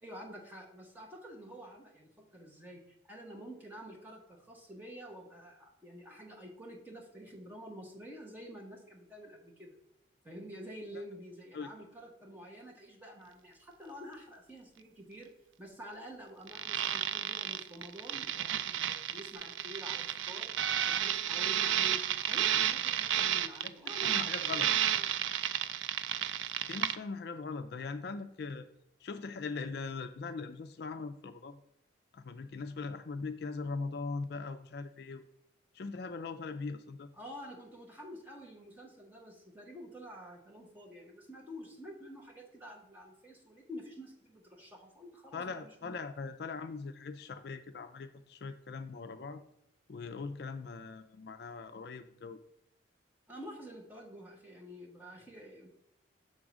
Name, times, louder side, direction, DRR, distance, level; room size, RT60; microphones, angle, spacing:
voice 1, 0.0-9.8 10.2-15.3 15.6-20.5 20.9-22.0 22.3-25.1 37.1-45.9 53.3-55.7, equal, 10° right, -1 dB, 1.1 m, -49 dB
sound 1, 16.5-27.0, right 10 dB, 80° right, 0.4 m, -32 dB
voice 2, 23.6-24.7 26.6-28.7 29.0-31.6 32.1-35.2 35.7-37.1 45.3-49.4 49.9-52.4, left 4 dB, 55° left, 9 dB, 0.4 m, -40 dB
6.9 x 3.7 x 6.0 m, 0.79 s
head